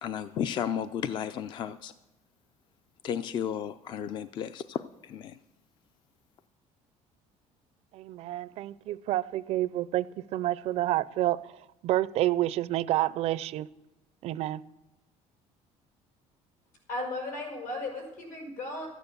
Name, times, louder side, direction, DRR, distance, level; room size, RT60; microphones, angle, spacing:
voice 1, 0.0-1.9 3.0-5.4, left 8 dB, 40° left, 0.4 m, -33 dB
voice 2, 7.9-11.4 11.8-13.7 14.2-14.6, right 14 dB, 55° right, 0.4 m, -29 dB
voice 3, 16.9-18.9, left 2 dB, 80° left, 5.3 m, -35 dB
13.5 x 9.2 x 6.8 m
cardioid pair, 170°, 13 cm